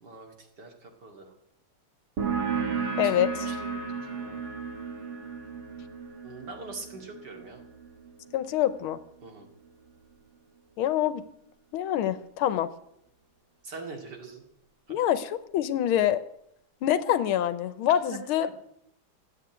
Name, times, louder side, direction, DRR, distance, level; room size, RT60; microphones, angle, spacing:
voice 1, 0.0-1.3 3.0-4.4 6.2-7.6 9.2-9.5 13.6-14.4 18.1-18.5, right 3 dB, 55° right, 2 dB, 2.9 m, -43 dB
sound 1, 2.2-9.4, right 5 dB, 75° right, 2.6 m, -34 dB
voice 2, 3.0-3.5 8.3-9.0 10.8-11.2 11.7-12.7 14.9-16.2 16.8-18.5, left 11 dB, 90° left, 13 dB, 1.7 m, -26 dB
14.0 x 8.3 x 9.0 m, 0.78 s
omnidirectional pair, 2.3 m